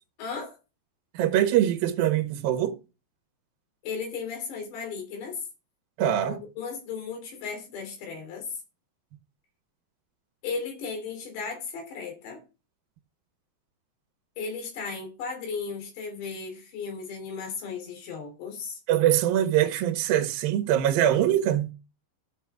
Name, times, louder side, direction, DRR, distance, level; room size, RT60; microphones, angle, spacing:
voice 1, 0.2-0.6 3.8-5.4 6.2-8.5 10.4-12.4 14.4-18.8, left 5 dB, 80° left, 5.4 m, -35 dB
voice 2, 1.1-2.8 6.0-6.4 18.9-21.7, right 11 dB, 70° right, 2.5 m, -23 dB
15.0 x 5.7 x 3.5 m
omnidirectional pair, 5.0 m